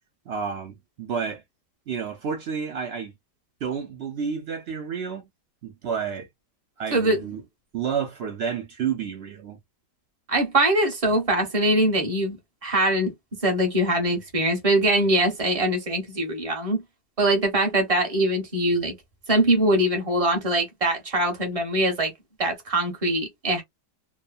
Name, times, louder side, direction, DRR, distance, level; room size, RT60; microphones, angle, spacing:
voice 1, 0.3-1.4 1.9-3.1 3.6-5.3 5.6-6.3 6.8-7.4 7.7-9.6, right 7 dB, 85° right, 0.5 m, -30 dB
voice 2, 10.3-12.4 12.6-13.1 13.4-16.8 17.2-18.9 19.3-22.1 22.4-23.6, right 1 dB, 25° right, 0.9 m, -22 dB
3.0 x 2.1 x 2.4 m
omnidirectional pair, 1.8 m